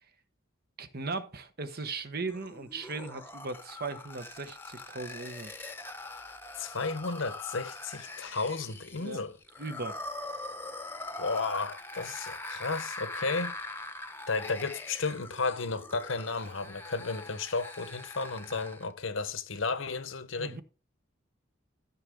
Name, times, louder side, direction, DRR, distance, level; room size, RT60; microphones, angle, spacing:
voice 1, 0.8-5.5 8.9-9.2 9.6-10.0 20.3-20.6, right 3 dB, 50° right, 1.1 m, -38 dB
sound 1, 2.3-18.9, left 2 dB, 10° left, 0.9 m, -42 dB
voice 2, 6.6-9.3 11.2-13.6 14.3-20.6, left 4 dB, 70° left, 1.0 m, -33 dB
13.5 x 6.4 x 3.6 m
head